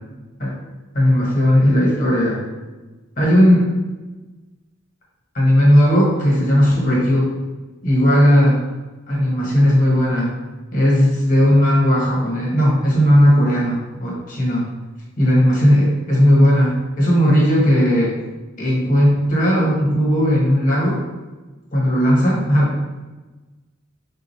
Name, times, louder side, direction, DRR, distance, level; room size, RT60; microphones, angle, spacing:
voice 1, 0.9-2.4 3.2-3.7 5.3-7.3 7.8-8.6 9.1-10.3 10.7-14.6 15.2-18.1 18.6-21.0 21.7-22.8, equal, 40° left, -5 dB, 1.4 m, -16 dB
3.7 x 2.6 x 4.3 m, 1.2 s
head